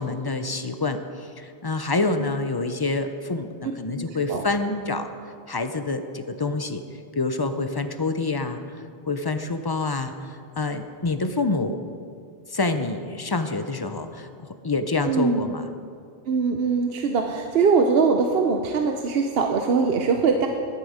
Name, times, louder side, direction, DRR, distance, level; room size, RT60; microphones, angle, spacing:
voice 1, 0.0-5.1 5.5-6.8 7.1-11.8 12.5-15.7, left 3 dB, 30° left, 8 dB, 0.5 m, -27 dB
voice 2, 15.1-15.5 16.3-20.5, right 5 dB, 75° right, 4 dB, 0.9 m, -22 dB
11.5 x 11.5 x 5.0 m, 2.2 s
omnidirectional pair, 1.0 m